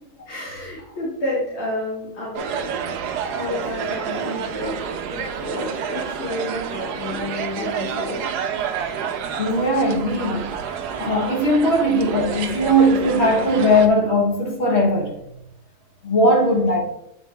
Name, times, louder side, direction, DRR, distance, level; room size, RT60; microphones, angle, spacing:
voice 1, 0.3-2.9 3.3-4.8 5.1-8.2, left 2 dB, 85° left, 2.9 m, -30 dB
sound 1, 2.3-13.9, right 7 dB, 70° right, 1.0 m, -29 dB
voice 2, 9.4-10.5 11.0-15.2 16.0-16.8, equal, 40° left, 1.3 m, -19 dB
8.1 x 4.6 x 3.3 m
omnidirectional pair, 2.2 m